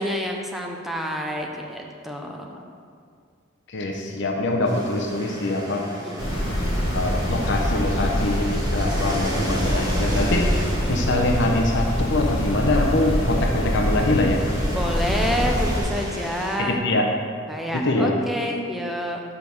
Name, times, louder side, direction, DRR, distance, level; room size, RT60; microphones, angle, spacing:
voice 1, 0.0-2.6 5.9-6.4 14.7-16.8 17.5-19.2, equal, ahead, 1 dB, 0.6 m, -28 dB
voice 2, 3.7-5.8 6.9-10.5 10.9-14.4 16.6-17.1 17.7-18.1, left 2 dB, 60° left, 1 dB, 0.8 m, -23 dB
sound 1, 4.7-16.6, right 1 dB, 20° right, 1.1 m, -35 dB
sound 2, 6.2-15.8, equal, 75° left, 1.9 m, -24 dB
5.2 x 5.0 x 6.3 m, 2.2 s
head